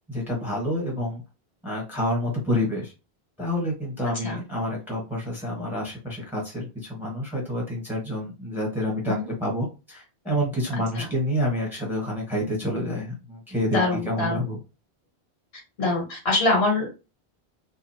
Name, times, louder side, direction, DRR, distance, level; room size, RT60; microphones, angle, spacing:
voice 1, 0.1-1.2 1.6-2.9 3.4-14.6, left 1 dB, ahead, -2 dB, 1.4 m, -28 dB
voice 2, 13.7-14.4 15.8-16.9, left 2 dB, 70° left, -1 dB, 1.7 m, -24 dB
2.6 x 2.6 x 2.7 m, 0.29 s
omnidirectional pair, 1.1 m